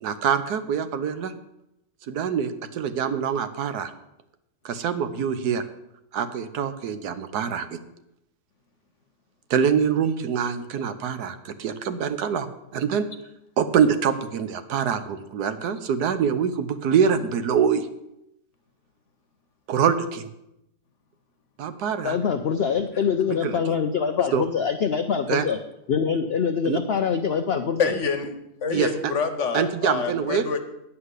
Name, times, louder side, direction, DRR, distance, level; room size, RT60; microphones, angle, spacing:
voice 1, 0.0-1.3 2.1-3.9 4.6-5.6 6.1-7.8 9.5-12.5 12.7-13.1 13.6-17.9 19.7-20.3 21.6-22.2 23.4-23.6 24.3-24.4 25.3-25.5 26.6-26.8 28.7-28.9 29.5-30.4, right 7 dB, 75° right, 10 dB, 1.3 m, -24 dB
voice 2, 22.0-25.6 25.9-27.9, left 6 dB, 75° left, 7 dB, 0.5 m, -24 dB
voice 3, 27.8-28.3 28.6-30.6, left 5 dB, 55° left, 7 dB, 1.1 m, -26 dB
9.5 x 5.7 x 8.1 m, 0.85 s
omnidirectional pair, 1.8 m